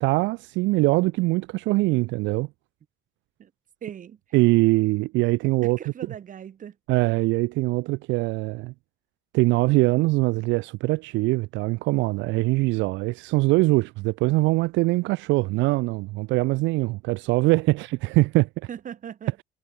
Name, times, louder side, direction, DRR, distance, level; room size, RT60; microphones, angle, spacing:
voice 1, 0.0-2.5 4.3-5.8 6.9-8.7 9.3-18.5, right 22 dB, 75° right, 0.4 m, -22 dB
voice 2, 3.8-4.2 5.6-6.8 18.7-19.4, right 9 dB, 45° right, 0.8 m, -39 dB
supercardioid pair, 70°, 19 cm